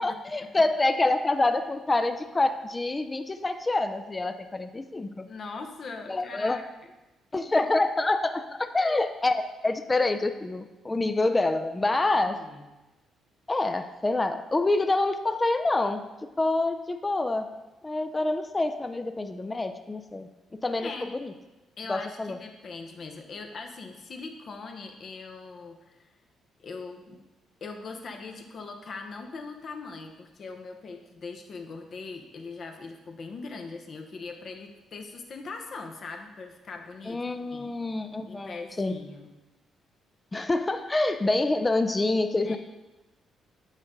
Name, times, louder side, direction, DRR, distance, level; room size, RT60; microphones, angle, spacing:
voice 1, 0.0-5.3 6.1-6.6 7.3-12.4 13.5-16.1 16.4-17.5 17.8-21.3 21.9-22.4 37.1-39.0 40.3-42.6, left 2 dB, 20° left, 8 dB, 0.4 m, -27 dB
voice 2, 5.3-6.9 11.8-12.7 20.8-21.1 21.8-26.1 26.6-27.2 27.6-37.2 37.5-37.7 38.3-39.3 42.4-42.6, left 4 dB, 50° left, 4 dB, 0.8 m, -41 dB
8.1 x 3.7 x 4.0 m, 1.1 s
cardioid pair, 90°, 0 cm